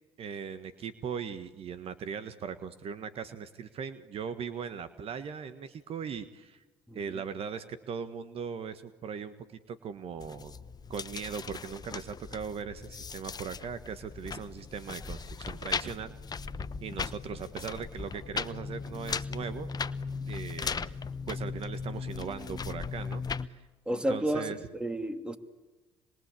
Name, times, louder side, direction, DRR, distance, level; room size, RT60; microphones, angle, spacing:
voice 1, 0.2-6.6 6.9-10.5 10.9-16.1 16.8-19.7 20.3-20.9 21.3-24.6, right 6 dB, 50° right, 11 dB, 1.5 m, -39 dB
voice 2, 6.9-7.2 23.9-25.4, right 1 dB, 5° right, 7 dB, 2.8 m, -32 dB
sound 1, 10.2-23.5, left 5 dB, 35° left, 1.0 m, -38 dB
27.0 x 21.5 x 8.5 m, 1.2 s
hypercardioid pair, 60°, 12 cm